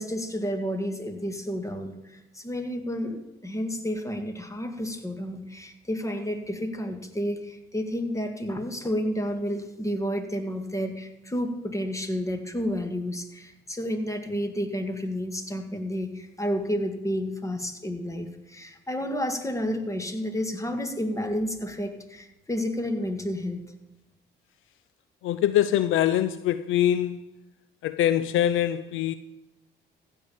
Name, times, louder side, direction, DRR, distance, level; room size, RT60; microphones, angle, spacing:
voice 1, 0.0-23.6, equal, 15° left, 1.9 m, -31 dB
voice 2, 25.2-27.2 27.8-29.1, left 11 dB, 70° left, 0.5 m, -23 dB
15.0 x 5.4 x 7.2 m
supercardioid pair, 65°, 21 cm